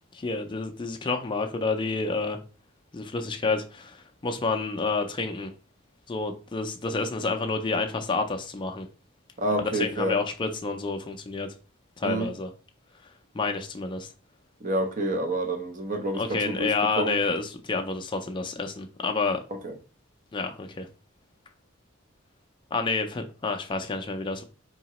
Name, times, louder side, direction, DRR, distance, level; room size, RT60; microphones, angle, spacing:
voice 1, 0.1-2.4 2.9-5.5 6.1-8.9 9.6-11.5 12.0-12.5 13.3-14.1 16.1-19.4 20.3-20.9 22.7-24.4, left 3 dB, 25° left, 0.3 m, -29 dB
voice 2, 9.4-10.2 12.0-12.3 14.6-17.2 19.5-19.8, right 1 dB, 40° right, 0.6 m, -28 dB
4.7 x 2.8 x 2.9 m
head